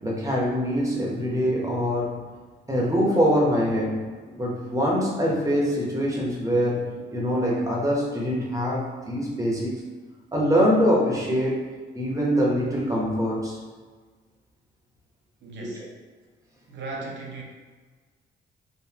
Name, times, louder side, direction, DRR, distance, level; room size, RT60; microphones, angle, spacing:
voice 1, 0.0-2.2 2.7-4.0 4.3-9.8 10.3-11.7 11.9-13.6 15.6-15.7, equal, 15° right, -3 dB, 1.0 m, -24 dB
voice 2, 15.4-15.9 16.7-17.4, right 3 dB, 65° right, -2 dB, 0.9 m, -37 dB
4.0 x 2.5 x 2.9 m, 1.4 s
cardioid pair, 90°, 20 cm